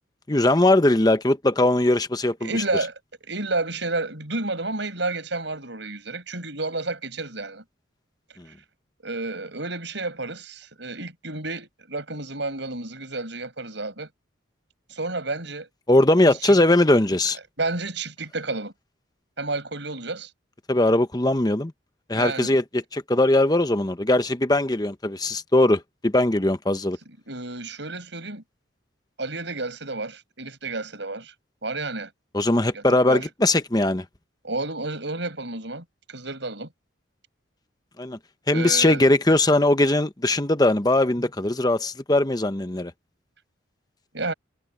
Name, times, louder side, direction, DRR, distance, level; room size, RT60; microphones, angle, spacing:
voice 1, 0.3-2.6 8.4-8.5 15.9-17.4 20.7-21.7 22.1-27.0 32.3-34.0 38.0-38.2 38.5-42.9, left 1 dB, 20° left, 0.9 m, -20 dB
voice 2, 2.4-2.9 3.2-7.6 9.0-14.1 14.9-15.7 16.3-16.6 17.6-18.7 19.4-20.3 22.1-22.5 27.3-28.4 29.2-31.3 31.6-32.1 32.7-33.3 34.4-36.7 38.5-39.0 44.1-44.3, right 2 dB, 65° right, 6.0 m, -31 dB
head